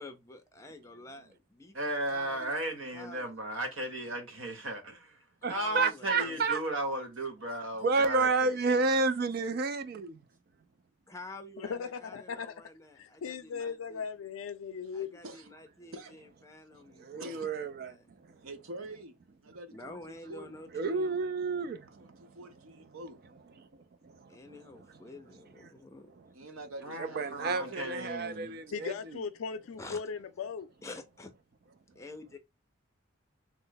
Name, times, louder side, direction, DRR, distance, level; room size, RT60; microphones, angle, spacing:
voice 1, 0.0-1.8 2.1-2.5 2.9-3.3 5.4-6.4 11.1-14.0 14.9-18.1 19.7-21.2 24.3-26.1 29.8-30.0 30.8-31.3 32.0-32.4, left 2 dB, 15° left, 0.5 m, -49 dB
voice 2, 1.7-5.2 5.5-9.0 26.8-28.6, right 1 dB, 75° right, 1.1 m, -36 dB
voice 3, 5.4-6.6 7.8-10.2 17.0-17.9 20.7-21.9 27.2-28.9, right 3 dB, 45° right, 0.4 m, -30 dB
voice 4, 11.6-12.6 13.0-15.2 28.7-30.7, left 6 dB, 80° left, 0.4 m, -38 dB
voice 5, 15.9-16.2 16.7-16.8 17.2-17.5 18.4-19.1 19.4-20.5 22.0-23.2 26.3-28.7, right 1 dB, 90° right, 0.7 m, -46 dB
3.1 x 2.0 x 3.8 m
head